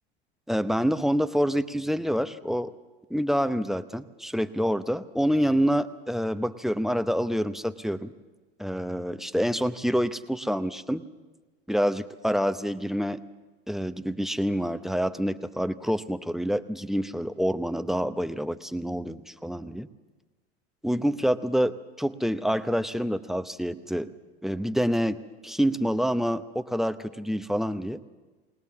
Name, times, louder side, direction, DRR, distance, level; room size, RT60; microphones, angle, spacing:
voice 1, 0.5-2.7 3.1-8.1 8.6-11.0 11.7-13.2 13.7-19.9 20.8-24.1 24.4-28.0, equal, ahead, 13 dB, 0.7 m, -27 dB
21.5 x 19.5 x 7.2 m, 1.3 s
hypercardioid pair, 85°, 32 cm